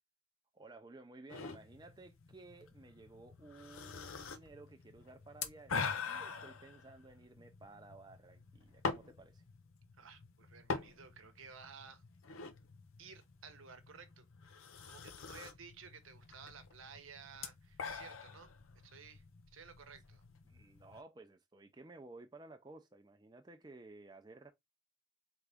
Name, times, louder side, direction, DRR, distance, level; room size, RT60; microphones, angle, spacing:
voice 1, 0.5-9.4 20.5-24.5, right 2 dB, 20° right, 0.4 m, -55 dB
sound 1, 1.3-21.0, left 5 dB, 85° left, 0.7 m, -45 dB
voice 2, 10.0-12.0 13.0-18.5 18.8-19.2 19.5-20.2, right 6 dB, 80° right, 0.9 m, -55 dB
3.9 x 3.6 x 3.4 m
head